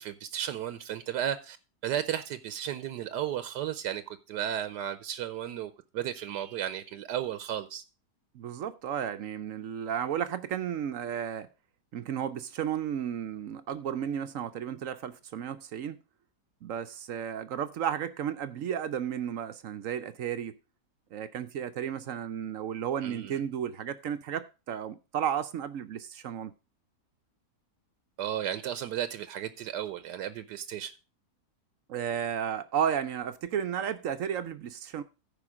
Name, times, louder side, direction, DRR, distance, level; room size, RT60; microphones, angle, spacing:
voice 1, 0.0-1.6 1.8-7.8 23.0-23.4 28.2-30.9, right 10 dB, 80° right, 1.3 m, -34 dB
voice 2, 8.3-11.5 11.9-16.0 16.6-20.5 21.1-26.5 31.9-35.0, right 9 dB, 65° right, 0.9 m, -33 dB
14.0 x 5.1 x 4.8 m
omnidirectional pair, 1.8 m